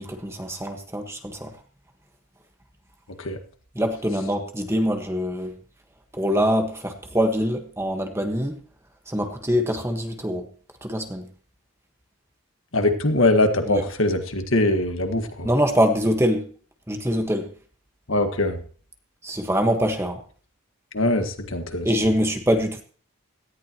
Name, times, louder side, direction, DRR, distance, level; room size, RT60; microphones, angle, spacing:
voice 1, 0.0-1.5 3.7-5.6 6.1-8.5 9.1-10.5 10.8-11.3 13.7-13.8 15.4-16.5 16.9-17.5 19.2-20.2 21.8-22.8, equal, 10° right, 4 dB, 1.5 m, -24 dB
voice 2, 12.7-15.5 18.1-18.6 20.9-21.9, left 2 dB, 65° left, 6 dB, 1.7 m, -22 dB
17.5 x 14.0 x 3.0 m, 0.43 s
head